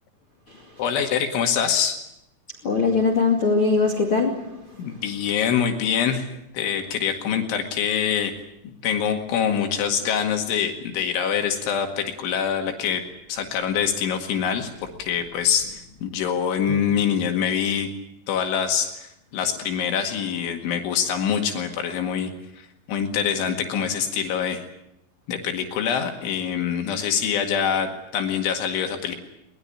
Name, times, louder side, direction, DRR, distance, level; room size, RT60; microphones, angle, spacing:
voice 1, 0.8-2.0 4.8-6.3 6.5-8.3 8.8-13.0 13.3-17.9 18.3-22.3 22.9-24.6 25.3-29.2, left 8 dB, 80° left, 4.3 m, -25 dB
voice 2, 2.6-4.8 16.7-16.8, left 4 dB, 40° left, 2.2 m, -22 dB
23.0 x 21.0 x 8.6 m
omnidirectional pair, 5.5 m